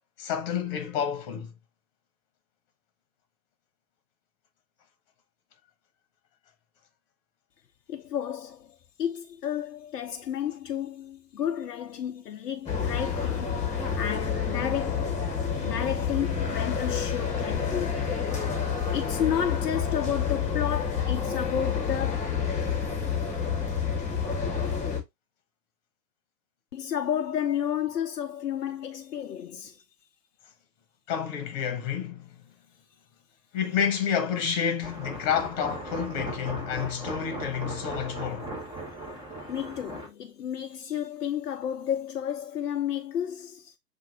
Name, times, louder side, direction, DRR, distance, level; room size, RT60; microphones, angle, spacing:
voice 1, 0.2-1.5 31.1-32.4 33.5-38.6, left 8 dB, 35° left, 1.2 m, -29 dB
voice 2, 7.9-15.2 15.6-18.2 18.9-22.4 26.7-29.8 39.5-43.7, left 9 dB, 70° left, 0.6 m, -32 dB
sound 1, 12.7-25.0, left 6 dB, 15° left, 1.4 m, -29 dB
sound 2, 34.8-40.1, right 1 dB, 10° right, 1.2 m, -37 dB
7.4 x 2.6 x 2.8 m
figure-of-eight pair, 110°, 49 cm